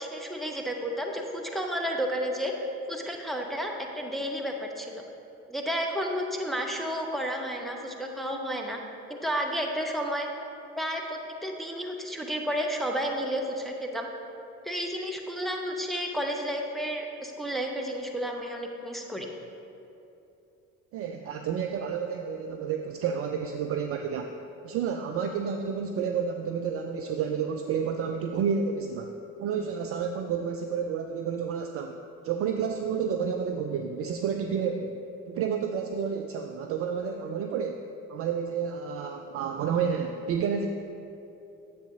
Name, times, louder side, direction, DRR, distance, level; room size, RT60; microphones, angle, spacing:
voice 1, 0.0-2.5 2.9-5.0 5.5-8.8 9.1-10.3 10.8-14.1 14.6-19.3, equal, ahead, 1 dB, 0.8 m, -31 dB
voice 2, 20.9-24.3 24.6-35.0 35.3-37.8 38.1-40.7, right 6 dB, 35° right, 5 dB, 0.4 m, -30 dB
9.7 x 7.6 x 2.7 m, 2.8 s
figure-of-eight pair, 50°, 41 cm